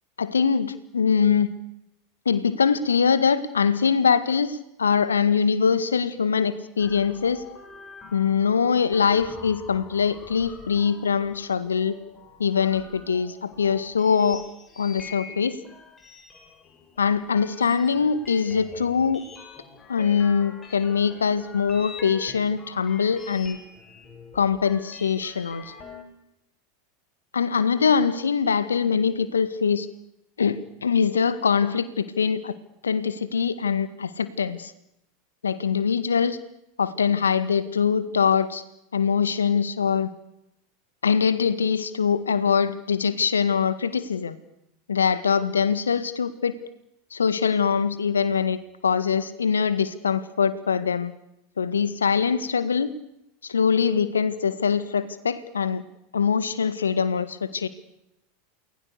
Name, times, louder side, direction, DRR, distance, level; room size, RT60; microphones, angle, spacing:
voice 1, 0.2-1.5 2.3-7.4 8.1-12.0 12.4-14.4 14.8-15.6 17.0-19.2 19.9-23.6 24.3-25.6 27.3-29.9 30.4-32.5 32.8-34.7 35.4-36.4 36.8-38.6 38.9-40.1 41.0-44.4 44.9-46.5 47.1-51.1 51.6-52.9 53.4-55.8 56.1-57.7, left 6 dB, 80° left, 14 dB, 1.8 m, -23 dB
sound 1, 6.8-26.0, left 4 dB, 20° left, 7.2 m, -45 dB
29.0 x 20.5 x 6.9 m, 0.83 s
figure-of-eight pair, 85°, 0 cm